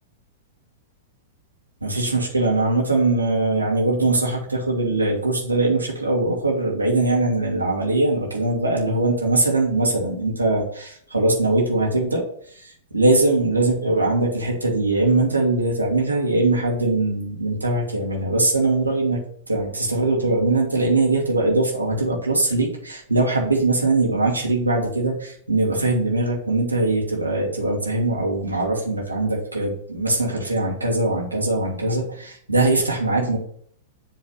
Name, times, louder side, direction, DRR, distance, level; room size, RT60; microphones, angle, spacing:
voice 1, 1.8-12.2 12.5-19.2 19.5-33.4, right 2 dB, 85° right, -1 dB, 1.6 m, -21 dB
7.5 x 3.2 x 5.6 m, 0.62 s
figure-of-eight pair, 100°, 0 cm